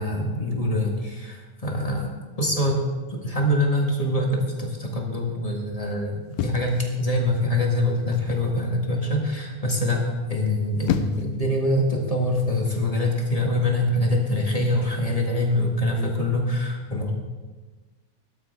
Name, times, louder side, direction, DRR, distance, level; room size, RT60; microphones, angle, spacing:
voice 1, 0.0-2.1 2.4-2.8 3.1-17.1, left 1 dB, 20° left, -1 dB, 0.9 m, -24 dB
sound 1, 6.3-7.4 8.1-8.5 10.5-11.4 12.3-12.6, left 8 dB, 75° left, 2.0 m, -30 dB
17.0 x 12.5 x 3.5 m, 1.3 s
omnidirectional pair, 3.5 m